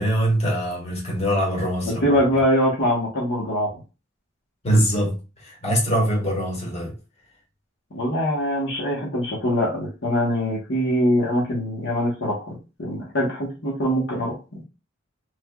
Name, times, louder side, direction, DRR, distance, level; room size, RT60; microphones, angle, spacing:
voice 1, 0.0-2.0 4.6-6.9, equal, 35° left, 1.2 m, -23 dB
voice 2, 2.0-3.7 7.9-14.4, equal, 65° left, 1.1 m, -23 dB
3.2 x 2.4 x 2.3 m
head